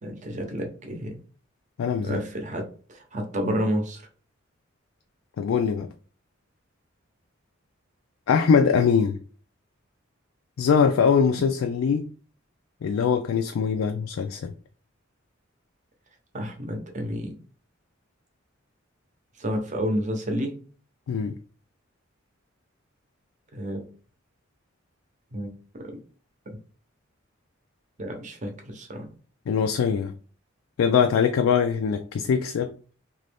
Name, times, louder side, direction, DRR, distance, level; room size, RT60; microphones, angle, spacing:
voice 1, 0.0-1.2 2.0-4.0 11.3-11.4 16.3-17.4 19.4-20.5 23.5-23.8 25.3-25.5 28.0-29.1, equal, 40° right, 0.8 m, -30 dB
voice 2, 1.8-2.2 5.4-5.9 8.3-9.2 10.6-12.0 12.8-14.5 21.1-21.3 29.5-30.1 30.8-32.7, left 6 dB, 85° left, 0.3 m, -22 dB
3.0 x 2.6 x 3.3 m
head